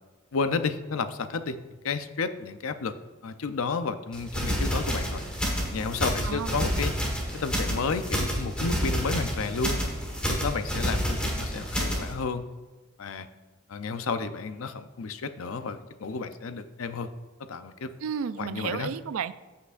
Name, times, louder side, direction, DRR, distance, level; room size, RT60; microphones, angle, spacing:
voice 1, 0.3-1.6 1.8-2.9 3.2-5.2 5.7-6.9 7.3-9.8 10.3-12.4 13.0-13.3 13.7-17.1 17.5-17.9 18.4-18.9, left 4 dB, 80° left, 11 dB, 0.5 m, -31 dB
sound 1, 4.1-12.1, equal, 5° left, 1.5 m, -29 dB
voice 2, 6.2-6.7 18.0-19.3, right 7 dB, 85° right, 14 dB, 0.4 m, -32 dB
14.0 x 5.8 x 2.5 m, 1.3 s
head